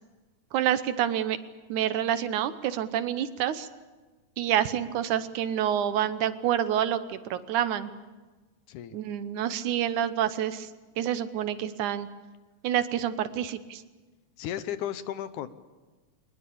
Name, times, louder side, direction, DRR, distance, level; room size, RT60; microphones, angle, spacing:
voice 1, 0.5-1.4 1.7-3.7 4.4-7.9 8.9-10.7 11.0-12.1 12.6-13.8, right 10 dB, 75° right, 12 dB, 2.3 m, -28 dB
voice 2, 14.4-15.5, left 11 dB, 75° left, 13 dB, 2.3 m, -34 dB
23.0 x 20.5 x 8.6 m, 1.2 s
omnidirectional pair, 3.6 m